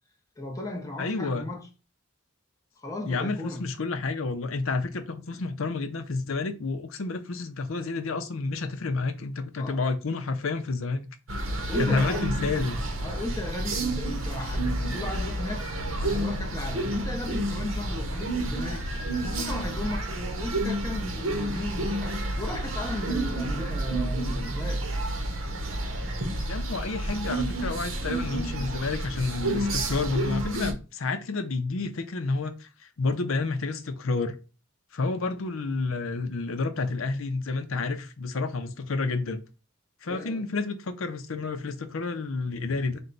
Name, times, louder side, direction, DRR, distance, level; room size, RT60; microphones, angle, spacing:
voice 1, 0.4-1.7 2.8-3.6 5.3-5.4 9.6-9.8 11.7-12.3 13.0-15.7 16.0-18.9 19.2-24.9 40.1-40.5, left 1 dB, 15° left, 0.7 m, -36 dB
voice 2, 1.0-1.5 3.1-11.1 11.8-12.8 26.4-34.4 34.9-39.4 40.0-43.0, left 3 dB, 70° left, 0.6 m, -30 dB
sound 1, 11.3-30.7, right 1 dB, 70° right, 0.8 m, -30 dB
4.3 x 2.2 x 3.8 m
head